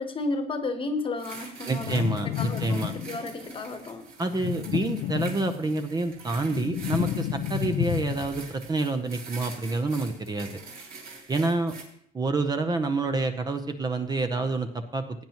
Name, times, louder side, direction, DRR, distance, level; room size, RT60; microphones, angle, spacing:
voice 1, 0.0-4.1, left 3 dB, 30° left, 8 dB, 1.2 m, -33 dB
sound 1, 1.2-11.8, right 4 dB, 60° right, 3.1 m, -45 dB
voice 2, 1.7-2.9 4.2-10.6 11.3-11.7 12.1-15.0, right 3 dB, 25° right, 8 dB, 0.7 m, -28 dB
sound 2, 1.8-3.3 4.3-5.8 6.2-8.6, left 12 dB, 65° left, 0.5 m, -31 dB
16.0 x 9.1 x 3.0 m, 0.67 s
cardioid pair, 110°, 17 cm